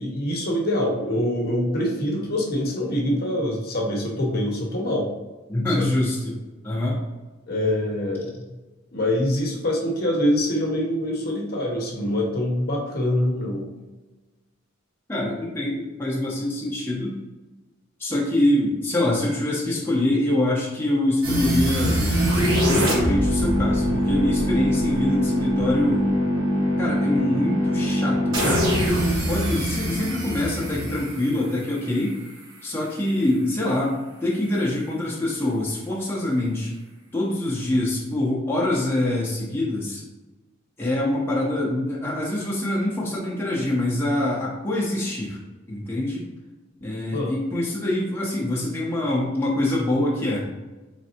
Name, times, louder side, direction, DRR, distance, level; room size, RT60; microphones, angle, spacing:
voice 1, 0.0-5.1 5.8-5.9 7.5-8.5 8.9-13.7 47.1-47.3, left 1 dB, 50° left, -1 dB, 0.8 m, -24 dB
voice 2, 5.5-6.4 6.6-7.0 15.1-17.1 18.0-22.2 22.7-26.1 26.8-28.8 29.3-32.1 32.6-36.7 37.1-40.0 40.8-45.4 45.7-46.2 46.8-50.4, left 1 dB, 10° left, -5 dB, 0.7 m, -25 dB
sound 1, 21.2-32.2, equal, 75° right, 1.0 m, -23 dB
3.9 x 3.3 x 2.8 m, 1.2 s
head